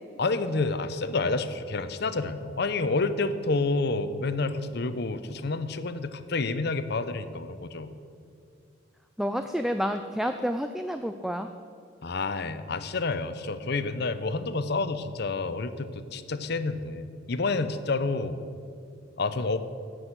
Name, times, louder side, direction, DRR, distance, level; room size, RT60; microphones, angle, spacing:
voice 1, 0.2-7.9 12.0-18.4 19.2-19.6, left 3 dB, 55° left, 11 dB, 0.7 m, -29 dB
voice 2, 9.2-11.5, equal, ahead, 7 dB, 0.3 m, -29 dB
15.5 x 6.3 x 8.0 m, 2.4 s
head